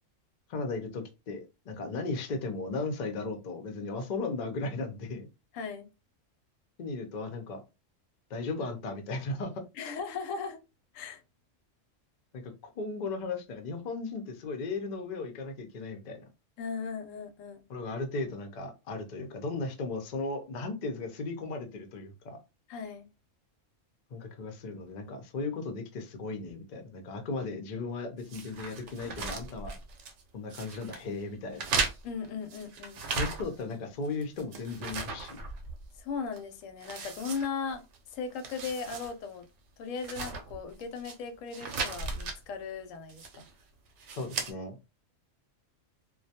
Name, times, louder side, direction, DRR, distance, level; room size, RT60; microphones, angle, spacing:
voice 1, 0.5-5.3 6.8-7.6 8.3-9.6 12.3-16.2 17.7-22.4 24.1-29.7 30.3-31.7 33.1-35.4 44.1-44.8, left 3 dB, 55° left, 0.5 m, -36 dB
voice 2, 5.5-5.9 9.7-10.6 10.9-11.2 16.6-17.6 22.7-23.1 32.0-33.1 35.9-39.5 39.8-43.5, left 5 dB, 85° left, 1.0 m, -37 dB
sound 1, 28.3-30.2 30.5-31.0 31.5-33.7 34.0-36.0 36.3-36.4 36.8-38.0 38.3-39.1 39.4-39.5 40.0-41.1 41.5-42.4 43.1-43.5 44.0-44.5, right 4 dB, 75° right, 0.9 m, -36 dB
2.2 x 2.2 x 2.7 m
omnidirectional pair, 1.3 m